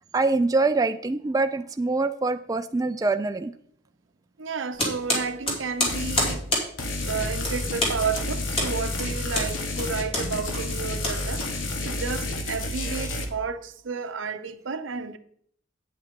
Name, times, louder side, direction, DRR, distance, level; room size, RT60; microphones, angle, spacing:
voice 1, 0.1-3.5, right 3 dB, 20° right, 0.3 m, -24 dB
voice 2, 4.4-6.5 7.0-15.2, right 5 dB, 85° right, 0.7 m, -32 dB
sound 1, 4.8-12.0, left 1 dB, 30° left, 2.6 m, -29 dB
sound 2, 5.9-6.4 6.8-13.3, left 2 dB, 85° left, 1.3 m, -30 dB
8.8 x 7.9 x 3.7 m
head